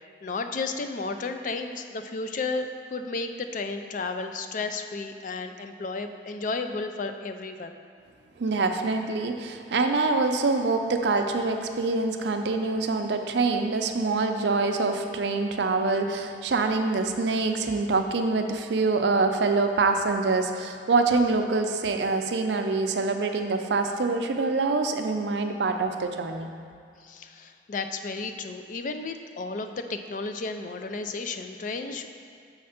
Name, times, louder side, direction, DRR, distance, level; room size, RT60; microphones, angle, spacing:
voice 1, 0.2-7.8 27.0-32.1, left 3 dB, 45° left, 7 dB, 0.4 m, -33 dB
voice 2, 8.4-26.5, right 3 dB, 70° right, 5 dB, 0.5 m, -25 dB
6.4 x 4.2 x 5.7 m, 2.3 s
head